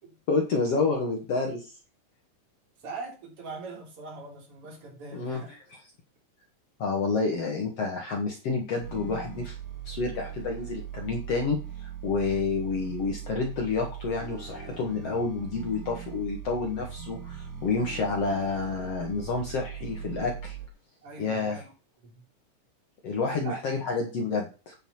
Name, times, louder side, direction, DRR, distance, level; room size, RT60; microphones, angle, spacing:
voice 1, 0.3-1.7 5.1-5.4 6.8-9.6 9.9-20.6 21.2-21.6 23.0-24.7, left 4 dB, 55° left, 2.7 m, -29 dB
voice 2, 2.8-5.5 21.0-21.7 22.0-22.1 23.3-23.6, right 4 dB, 45° right, 4.1 m, -41 dB
sound 1, 8.8-20.7, right 9 dB, 75° right, 3.6 m, -40 dB
9.2 x 7.1 x 5.6 m
omnidirectional pair, 3.6 m